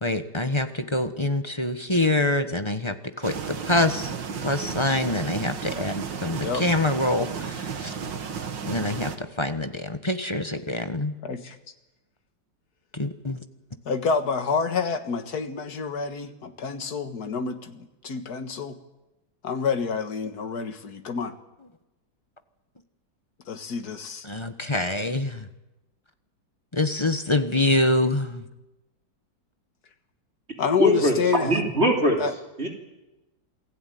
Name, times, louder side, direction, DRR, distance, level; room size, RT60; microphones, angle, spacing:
voice 1, 0.0-4.1 4.4-7.9 8.7-11.1 12.9-13.4 24.2-25.5 26.7-28.4, left 2 dB, 20° left, 8 dB, 1.1 m, -25 dB
sound 1, 3.2-9.2, right 6 dB, 80° right, 2.3 m, -33 dB
voice 2, 6.3-6.7 11.2-11.6 13.9-18.8 19.4-21.3 23.5-24.3 30.6-31.6 32.2-32.3, left 5 dB, 60° left, 7 dB, 2.2 m, -28 dB
voice 3, 30.8-32.2 32.6-32.7, equal, 35° right, 1 dB, 3.5 m, -21 dB
28.0 x 17.5 x 9.4 m, 1.0 s
omnidirectional pair, 2.0 m